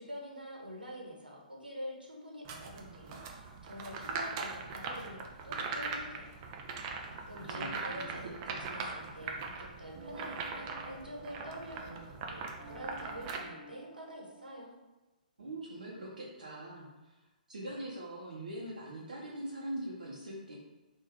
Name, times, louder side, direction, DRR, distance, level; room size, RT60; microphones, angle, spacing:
voice 1, 0.0-6.4 7.3-14.7, equal, 80° right, -2 dB, 1.2 m, -46 dB
sound 1, 2.4-13.4, right 4 dB, 30° right, 0.5 m, -41 dB
voice 2, 7.3-8.0 8.4-8.6 15.4-17.2 17.5-20.6, right 1 dB, 65° right, -5 dB, 0.9 m, -42 dB
sound 2, 9.9-12.3 12.6-14.6, right 2 dB, ahead, 1.1 m, -52 dB
3.6 x 2.7 x 4.5 m, 1.1 s
figure-of-eight pair, 120°, 5 cm